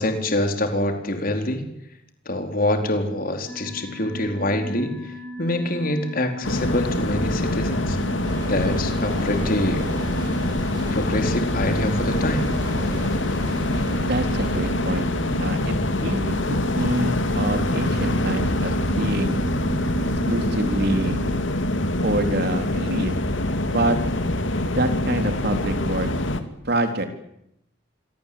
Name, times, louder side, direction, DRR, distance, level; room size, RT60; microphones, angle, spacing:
voice 1, 0.0-1.7 2.3-8.0 8.5-9.9 10.9-12.5, left 1 dB, 45° left, 5 dB, 4.3 m, -25 dB
sound 1, 3.5-21.3, right 2 dB, 10° left, 2.9 m, -36 dB
sound 2, 6.4-26.4, left 1 dB, 70° left, 2.7 m, -24 dB
sound 3, 8.2-18.1 18.3-18.4, right 1 dB, 20° right, 7.5 m, -41 dB
voice 2, 14.0-15.1 15.4-15.7 16.0-19.4 20.3-21.2 22.0-23.1 23.7-24.0 24.7-26.1 26.6-27.1, right 1 dB, 55° right, 6 dB, 4.0 m, -26 dB
27.0 x 23.5 x 8.8 m, 0.79 s
head